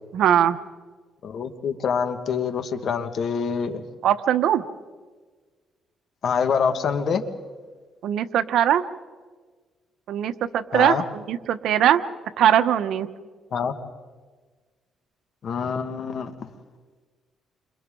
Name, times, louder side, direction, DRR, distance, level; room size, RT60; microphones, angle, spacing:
voice 1, 0.1-0.6 4.0-4.6 8.0-8.8 10.1-12.0 12.4-13.1, right 10 dB, 75° right, 11 dB, 1.0 m, -20 dB
voice 2, 1.2-3.8 6.2-7.2 10.7-11.0 13.5-13.7 15.4-16.5, left 6 dB, 60° left, 7 dB, 1.8 m, -25 dB
29.5 x 26.5 x 3.9 m, 1.4 s
cardioid pair, 90°, 0 cm